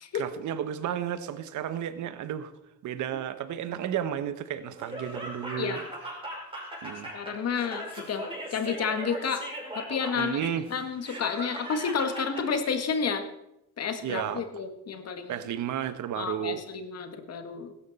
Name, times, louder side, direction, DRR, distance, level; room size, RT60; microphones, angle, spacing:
voice 1, 0.1-2.5 2.8-5.8 6.8-7.1 10.1-10.7 14.0-14.4 15.3-16.6, right 10 dB, 75° right, 12 dB, 1.1 m, -32 dB
Laughter, 4.8-12.5, right 1 dB, 20° right, 5.8 m, -39 dB
voice 2, 7.1-9.5 9.8-10.4 10.7-13.3 13.8-15.5 16.2-17.7, left 6 dB, 55° left, 8 dB, 1.7 m, -31 dB
16.0 x 12.5 x 4.1 m, 0.85 s
cardioid pair, 90°, 30 cm